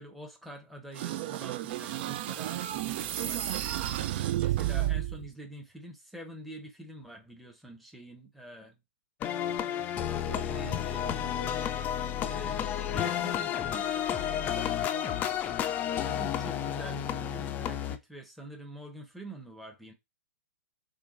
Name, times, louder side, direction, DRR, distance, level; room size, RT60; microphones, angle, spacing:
voice 1, 0.0-3.9 4.4-8.7 10.5-11.4 12.2-12.6 12.9-13.9 15.9-19.9, right 1 dB, ahead, 0.7 m, -46 dB
sound 1, 1.0-5.3, right 13 dB, 50° right, 0.3 m, -31 dB
voice 2, 4.4-5.0 9.9-11.7 14.3-16.2, right 5 dB, 75° right, 1.5 m, -49 dB
sound 2, 9.2-18.0, left 10 dB, 25° left, 0.4 m, -31 dB
3.8 x 2.2 x 3.7 m
hypercardioid pair, 115°, 7 cm